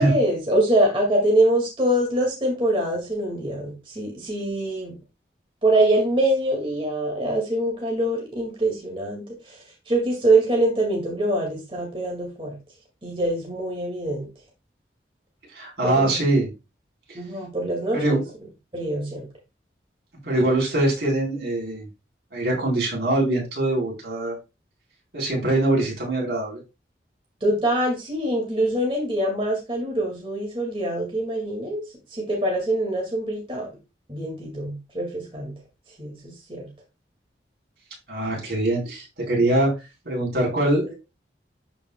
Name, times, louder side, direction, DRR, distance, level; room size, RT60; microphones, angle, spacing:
voice 1, 0.0-4.9 5.6-12.6 13.0-14.3 15.8-16.2 17.1-18.2 18.7-19.3 27.4-31.8 32.1-33.7 34.1-35.5 36.0-36.7, right 1 dB, 30° right, -1 dB, 2.0 m, -24 dB
voice 2, 15.6-16.5 17.9-18.2 20.2-21.9 22.3-24.4 25.1-26.6 38.1-39.7 40.1-40.9, right 1 dB, 70° right, -2 dB, 3.9 m, -23 dB
12.5 x 5.1 x 2.2 m, 0.25 s
head